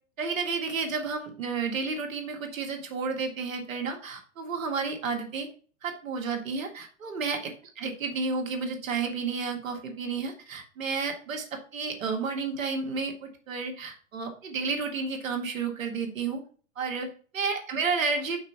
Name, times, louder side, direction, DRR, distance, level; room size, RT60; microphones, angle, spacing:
voice 1, 0.2-5.5 5.8-16.4 16.8-18.4, right 4 dB, 90° right, 3 dB, 2.0 m, -31 dB
5.8 x 4.4 x 5.6 m, 0.41 s
hypercardioid pair, 120°, 39 cm